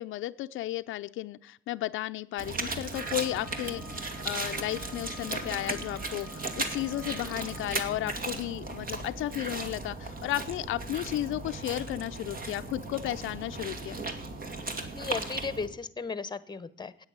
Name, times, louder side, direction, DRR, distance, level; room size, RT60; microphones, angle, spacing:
voice 1, 0.0-14.0, left 15 dB, 80° left, 10 dB, 0.5 m, -34 dB
sound 1, 2.4-15.7, right 3 dB, 45° right, 2.1 m, -36 dB
Wind instrument woodwind instrument, 2.9-8.0, left 3 dB, 5° right, 2.8 m, -51 dB
voice 2, 14.9-17.1, left 5 dB, 20° left, 16 dB, 0.9 m, -35 dB
9.9 x 8.9 x 8.8 m, 0.64 s
cardioid pair, 90°, 20 cm